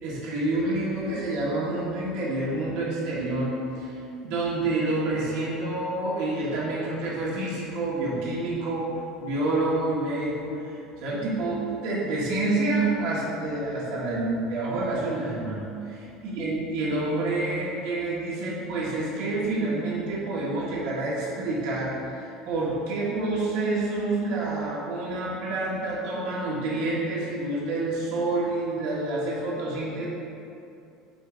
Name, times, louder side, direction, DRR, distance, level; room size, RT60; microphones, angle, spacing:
voice 1, 0.0-8.9 9.2-16.0 16.2-30.1, right 2 dB, 60° right, -6 dB, 1.3 m, -28 dB
7.7 x 2.6 x 4.9 m, 2.7 s
cardioid pair, 175°, 0 cm